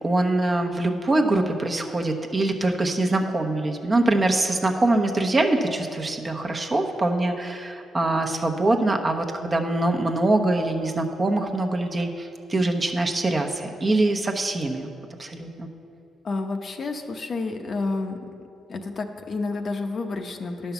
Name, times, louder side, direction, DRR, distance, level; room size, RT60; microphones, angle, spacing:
voice 1, 0.0-14.9 15.2-15.7, right 2 dB, 30° right, 3 dB, 0.9 m, -23 dB
voice 2, 16.2-18.2 18.7-20.7, left 3 dB, 50° left, 5 dB, 0.8 m, -30 dB
10.5 x 5.6 x 7.0 m, 2.6 s
cardioid pair, 90°, 0 cm